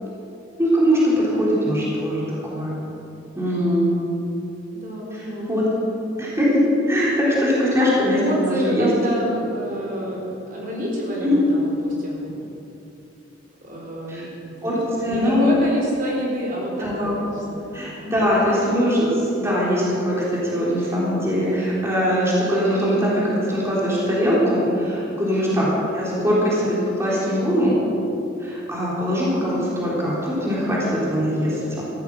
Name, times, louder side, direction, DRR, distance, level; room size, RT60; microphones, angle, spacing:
voice 1, 0.6-2.8 3.3-3.9 5.1-5.7 6.2-6.6 6.9-8.2 8.5-8.9 11.2-11.3 14.1-14.2 14.6-15.5 16.8-17.2 17.7-25.7 25.9-27.8 28.4-31.8, equal, 15° right, -7 dB, 3.7 m, -21 dB
voice 2, 4.7-5.7 7.8-7.9 8.2-12.4 13.6-17.9 25.3-25.7, right 1 dB, 45° right, -3 dB, 3.9 m, -28 dB
15.0 x 13.0 x 6.4 m, 2.8 s
head